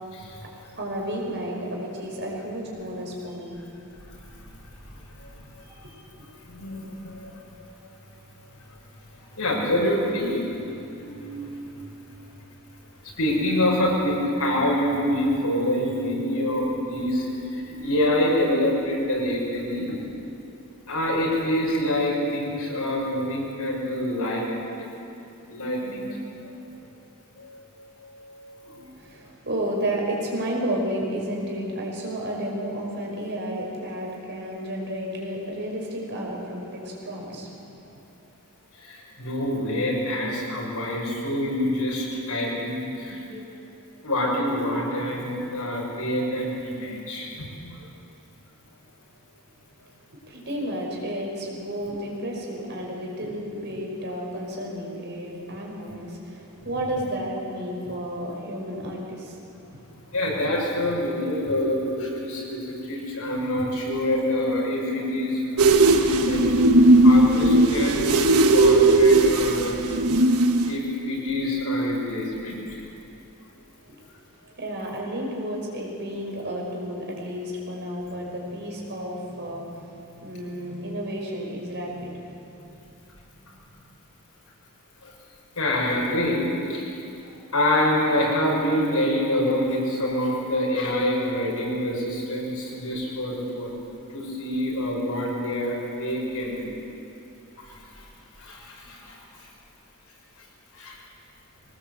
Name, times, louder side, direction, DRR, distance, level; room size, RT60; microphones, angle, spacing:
voice 1, 0.7-3.6 5.6-6.0 28.9-37.5 50.3-59.4 74.6-82.7 83.7-83.8, equal, 50° right, -1 dB, 5.4 m, -32 dB
voice 2, 5.2-5.6 6.4-7.4 9.4-10.6 10.9-11.5 13.2-19.9 20.9-24.5 24.8-24.9 25.5-26.2 26.4-26.5 27.4-27.6 28.0-28.9 38.8-43.6 44.0-47.9 60.1-66.4 67.0-69.7 70.7-72.8 85.0-85.1 85.6-87.0 87.3-93.8 94.1-96.7 97.6-98.0 98.4-99.5 100.4-100.5 100.7-101.0, left 1 dB, 90° left, -2 dB, 6.3 m, -26 dB
sound 1, 65.6-70.8, right 2 dB, 85° right, 1.4 m, -17 dB
22.5 x 19.0 x 8.2 m, 2.8 s
head